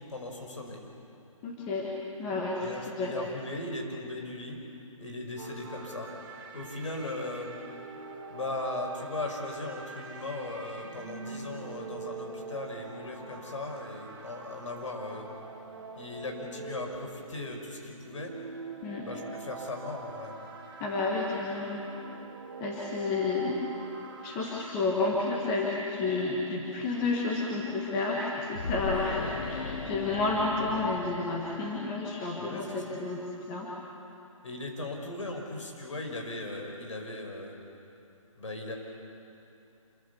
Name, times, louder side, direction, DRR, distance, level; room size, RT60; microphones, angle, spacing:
voice 1, 0.1-0.9 2.6-4.6 5.0-6.1 6.5-7.5 8.3-15.3 16.0-18.3 19.0-20.4 28.9-29.1 32.4-33.0 34.4-37.6 38.4-38.8, left 2 dB, 60° left, 2 dB, 5.6 m, -38 dB
voice 2, 1.4-1.9 2.2-3.1 18.8-19.1 20.8-21.8 22.6-23.6 24.2-33.7, left 3 dB, 10° left, -3 dB, 1.5 m, -31 dB
sound 1, 5.4-24.6, right 4 dB, 40° right, 2.6 m, -44 dB
sound 2, 28.6-32.0, left 4 dB, 75° left, 1.8 m, -37 dB
27.5 x 23.5 x 7.1 m, 2.7 s
hypercardioid pair, 180°, 18 cm